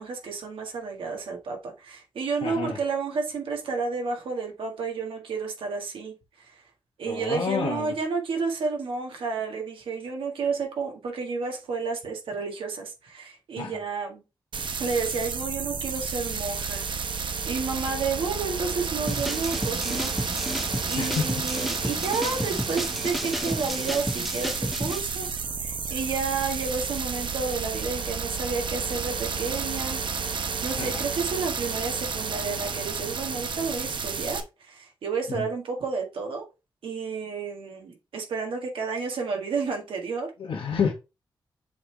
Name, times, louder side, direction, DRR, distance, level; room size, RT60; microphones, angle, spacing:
voice 1, 0.0-6.6 7.0-14.2 14.8-17.0 17.4-20.1 20.9-25.3 25.6-36.5 36.8-40.3, right 4 dB, 90° right, 1.8 m, -31 dB
voice 2, 2.4-2.8 7.1-7.9 13.6-13.7 21.0-21.3 30.8-31.0 35.3-35.5 40.4-40.9, left 6 dB, 80° left, 1.2 m, -29 dB
sound 1, 14.5-34.4, right 5 dB, 65° right, 1.0 m, -31 dB
sound 2, 19.1-25.0, equal, ahead, 0.7 m, -32 dB
7.7 x 3.7 x 3.3 m
cardioid pair, 60°, 9 cm